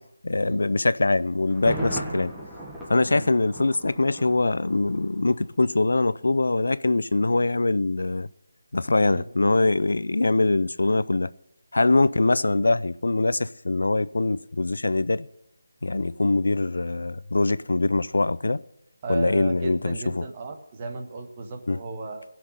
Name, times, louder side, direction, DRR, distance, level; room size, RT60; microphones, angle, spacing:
voice 1, 0.2-2.3 2.9-8.3 8.7-11.3 11.7-15.3 15.8-18.6 19.1-20.2 21.7-21.8, left 2 dB, 75° left, 0.5 m, -23 dB
Thunder, 1.5-5.4 5.7-5.8, right 1 dB, 5° right, 1.3 m, -36 dB
voice 2, 19.0-22.2, right 3 dB, 20° right, 1.2 m, -34 dB
15.5 x 6.1 x 9.9 m
figure-of-eight pair, 175°, 0 cm